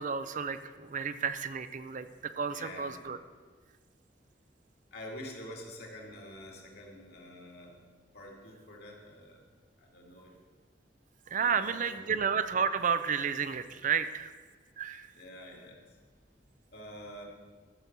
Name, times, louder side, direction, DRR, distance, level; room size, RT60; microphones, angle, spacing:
voice 1, 0.0-3.2 11.3-14.3 14.8-15.1, right 6 dB, 45° right, 11 dB, 0.5 m, -31 dB
voice 2, 2.5-3.0 4.9-7.7 8.1-9.4 9.8-10.4 11.3-12.1 15.1-16.0 16.7-17.3, left 1 dB, 60° left, 0 dB, 2.5 m, -47 dB
13.5 x 6.9 x 6.0 m, 1.4 s
head